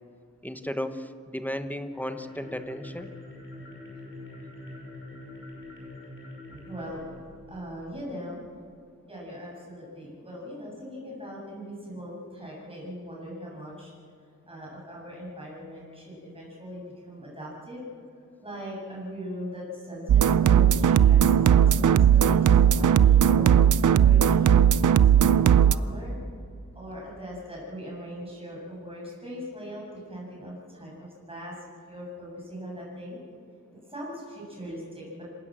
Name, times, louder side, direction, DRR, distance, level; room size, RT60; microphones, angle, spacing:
voice 1, 0.4-3.1, left 1 dB, 5° left, 8 dB, 1.1 m, -34 dB
sound 1, 1.8-8.1, left 2 dB, 40° left, 6.5 m, -45 dB
voice 2, 6.5-7.2 7.5-8.4 9.1-13.9 14.5-17.8 18.4-24.5 25.0-26.2 26.7-31.5 31.9-33.2 33.7-35.2, equal, 20° right, -5 dB, 7.7 m, -40 dB
sound 2, 20.1-25.7, right 9 dB, 75° right, 0.6 m, -18 dB
26.5 x 18.0 x 7.6 m, 2.3 s
wide cardioid pair, 135°, 31 cm